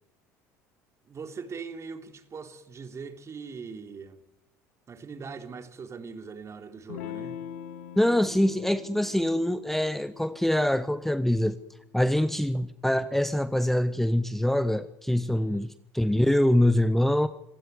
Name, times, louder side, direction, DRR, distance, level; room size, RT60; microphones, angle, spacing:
voice 1, 1.1-4.2 4.9-7.4 15.4-15.7, right 5 dB, 35° right, 3.5 m, -41 dB
Electric guitar / Strum, 6.9-12.0, left 10 dB, 85° left, 1.3 m, -43 dB
voice 2, 8.0-11.6 11.9-17.3, left 1 dB, 5° left, 1.0 m, -24 dB
25.5 x 16.0 x 9.4 m
hypercardioid pair, 75°, 8 cm